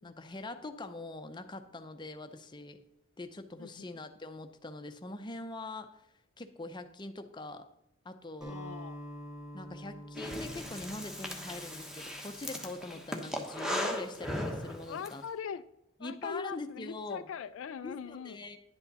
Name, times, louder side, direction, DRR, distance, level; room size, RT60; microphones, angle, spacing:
voice 1, 0.0-2.8 3.2-6.0 6.4-7.7 8.0-8.6 9.5-15.2 16.0-17.3 17.8-18.6, left 2 dB, 20° left, 7 dB, 0.6 m, -43 dB
Acoustic guitar, 8.4-12.9, equal, 20° right, 3.8 m, -47 dB
voice 2, 8.5-9.0 12.9-13.0 14.8-15.6 16.0-18.4, left 7 dB, 65° left, 13 dB, 0.3 m, -41 dB
Breathing, 10.2-15.1, equal, 5° right, 1.0 m, -37 dB
11.0 x 8.3 x 4.0 m, 0.81 s
head